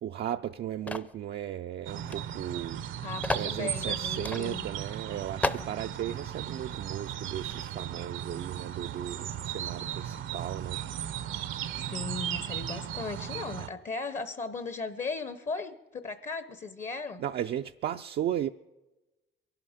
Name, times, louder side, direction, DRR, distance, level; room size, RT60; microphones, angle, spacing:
voice 1, 0.0-2.8 3.3-10.8 17.2-18.5, right 10 dB, 55° right, 0.4 m, -35 dB
sound 1, 0.9-1.2 2.1-2.2 2.5-2.6 3.2-3.5 4.2-4.4 4.9-5.0 5.4-5.7, left 2 dB, 5° left, 0.5 m, -31 dB
sound 2, 1.9-13.7, right 10 dB, 80° right, 0.8 m, -36 dB
voice 2, 3.0-4.7 11.8-17.2, left 4 dB, 40° left, 0.8 m, -37 dB
23.0 x 11.5 x 5.0 m
cardioid pair, 90°, 20 cm